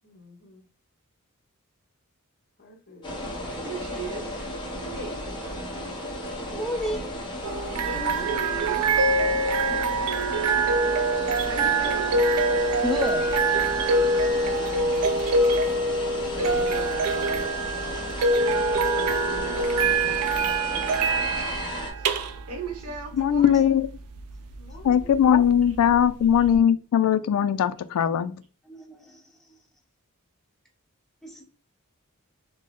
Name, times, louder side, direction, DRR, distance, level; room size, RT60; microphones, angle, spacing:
voice 1, 0.0-0.7 2.6-3.2 6.8-6.9 16.2-16.3 24.6-25.4, left 3 dB, 45° left, 0.8 m, -49 dB
sound 1, 3.0-21.9, left 1 dB, 20° left, 1.0 m, -35 dB
voice 2, 3.6-4.4 4.8-5.2 7.8-8.8 11.4-12.1 16.3-17.5 22.0-22.1 22.5-23.8, right 3 dB, 70° right, 0.8 m, -37 dB
voice 3, 6.5-7.0 12.8-13.3 28.7-29.2 31.2-31.4, left 1 dB, ahead, 0.7 m, -30 dB
sound 2, 7.4-26.6, right 2 dB, 90° right, 0.4 m, -25 dB
voice 4, 23.2-23.9 24.8-28.4, left 9 dB, 75° left, 0.3 m, -20 dB
4.3 x 2.0 x 3.0 m
head